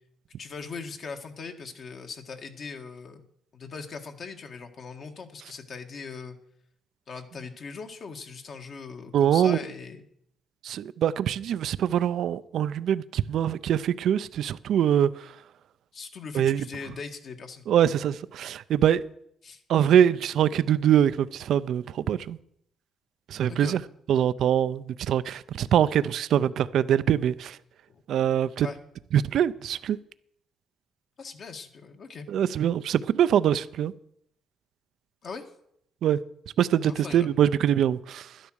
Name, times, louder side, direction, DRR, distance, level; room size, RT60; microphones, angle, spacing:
voice 1, 0.4-3.3 3.5-6.4 7.1-10.0 15.9-17.7 19.4-19.6 23.5-23.8 27.9-28.0 28.6-28.8 31.2-32.3 35.2-35.5 36.8-37.3, left 5 dB, 55° left, 1.7 m, -40 dB
voice 2, 9.1-9.6 10.6-15.3 16.3-16.6 17.7-19.0 19.7-22.4 23.3-23.8 24.1-27.6 28.1-28.7 29.1-30.0 32.3-33.9 36.0-36.2 36.6-38.3, right 10 dB, 70° right, 0.5 m, -23 dB
12.0 x 10.0 x 6.4 m
cardioid pair, 90°, 0 cm